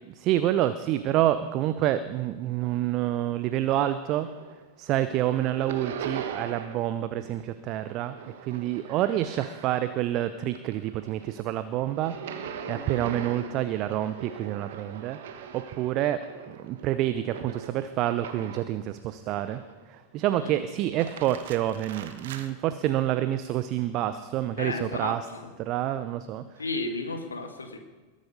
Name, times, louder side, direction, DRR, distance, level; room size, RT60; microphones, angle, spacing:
voice 1, 0.2-4.3 4.8-12.1 12.7-15.2 15.5-19.6 19.9-25.3 25.6-26.4, right 13 dB, 40° right, 12 dB, 0.8 m, -28 dB
sound 1, 3.9-4.6 4.9-6.9 7.2-10.1 10.5-18.8 19.3-20.0 20.8-22.5, right 7 dB, 55° right, 1.3 m, -41 dB
voice 2, 12.6-13.0 20.4-20.6 24.6-25.5 26.6-27.8, left 3 dB, 75° left, 6 dB, 1.9 m, -34 dB
21.0 x 10.5 x 5.4 m, 1.3 s
figure-of-eight pair, 90°, 0 cm